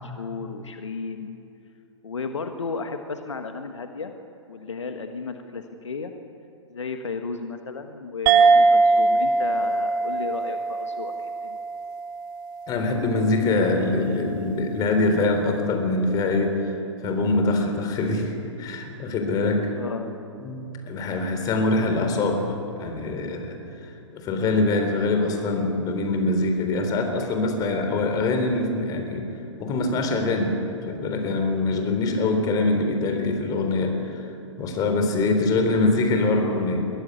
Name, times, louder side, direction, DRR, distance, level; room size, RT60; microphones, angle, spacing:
voice 1, 0.0-1.4 2.0-4.1 4.5-6.1 6.7-11.6 19.8-20.1, left 4 dB, 70° left, 6 dB, 1.5 m, -34 dB
sound 1, 8.3-13.2, right 4 dB, 40° right, 1.2 m, -21 dB
voice 2, 12.7-16.8 17.0-19.7 20.4-22.5 22.8-23.6 23.8-29.3 29.6-34.3 34.6-36.9, left 2 dB, 25° left, 5 dB, 3.7 m, -24 dB
22.5 x 16.0 x 9.7 m, 2.8 s
figure-of-eight pair, 115°, 16 cm